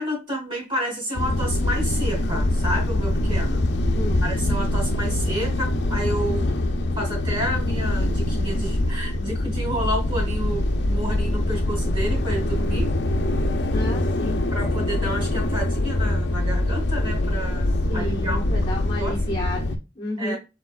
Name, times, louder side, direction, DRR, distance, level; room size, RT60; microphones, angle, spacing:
voice 1, 0.0-3.6 4.2-6.5 7.0-12.9 14.5-18.4 19.0-19.4 20.2-20.4, equal, 30° right, -2 dB, 2.8 m, -30 dB
sound 1, 1.2-19.8, left 1 dB, 90° left, 0.6 m, -24 dB
voice 2, 13.7-14.4 17.9-20.4, left 1 dB, 30° left, -3 dB, 1.3 m, -31 dB
4.6 x 4.4 x 2.3 m, 0.26 s
head